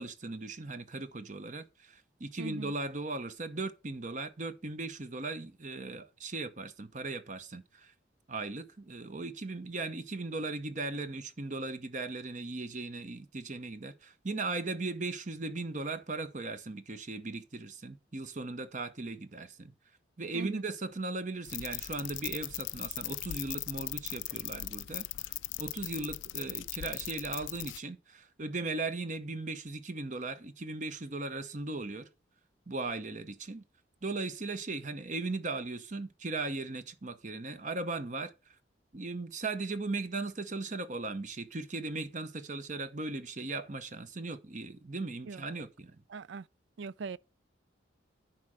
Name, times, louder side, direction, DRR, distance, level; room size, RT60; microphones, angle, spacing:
voice 1, 0.0-7.9 8.3-19.7 20.2-25.3 25.6-32.1 32.7-33.6 34.0-38.3 38.9-45.9, right 3 dB, 40° right, 0.8 m, -38 dB
voice 2, 2.4-2.7 20.3-20.7 45.2-45.7 46.1-46.5 46.8-47.2, right 4 dB, 70° right, 0.4 m, -41 dB
sound 1, 21.4-27.8, left 16 dB, 75° left, 0.3 m, -39 dB
10.0 x 4.3 x 6.1 m
head